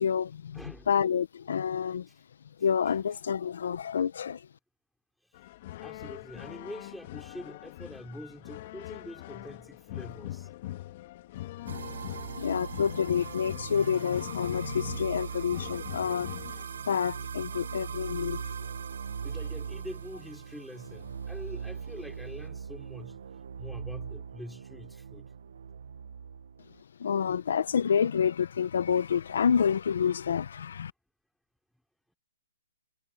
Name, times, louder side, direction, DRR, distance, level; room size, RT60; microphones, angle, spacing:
voice 1, 0.0-2.1 2.6-4.5 11.7-12.0 12.3-16.3 16.9-18.5 27.0-30.9, left 7 dB, 70° left, 1.0 m, -28 dB
voice 2, 0.5-0.9 5.2-5.4 5.8-10.5 19.2-23.2 23.6-25.3, equal, ahead, 4.2 m, -45 dB
sound 1, 5.3-16.6, left 15 dB, 40° left, 3.5 m, -42 dB
sound 2, 11.7-26.8, right 6 dB, 70° right, 1.5 m, -40 dB
hypercardioid pair, 150°, 0 cm